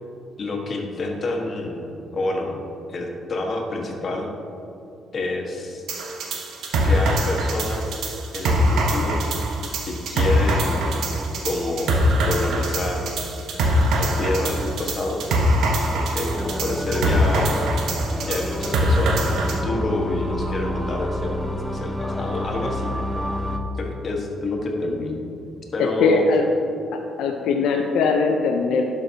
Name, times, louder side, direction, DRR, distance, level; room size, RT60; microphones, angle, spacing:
voice 1, 0.4-2.6 2.9-4.3 5.1-5.8 6.8-8.0 8.3-9.2 9.8-10.9 11.4-11.9 12.2-13.1 13.9-15.3 15.9-17.7 18.2-23.0 23.8-25.1 25.7-26.3, left 2 dB, 45° left, 0 dB, 1.4 m, -28 dB
sound 1, 5.9-19.6, equal, 80° right, 1.0 m, -23 dB
sound 2, 16.4-23.6, left 1 dB, 5° left, 0.6 m, -28 dB
voice 2, 25.8-26.4 26.9-28.8, left 4 dB, 80° left, 2 dB, 0.5 m, -21 dB
11.5 x 5.8 x 2.8 m, 2.7 s
cardioid pair, 90°, 0 cm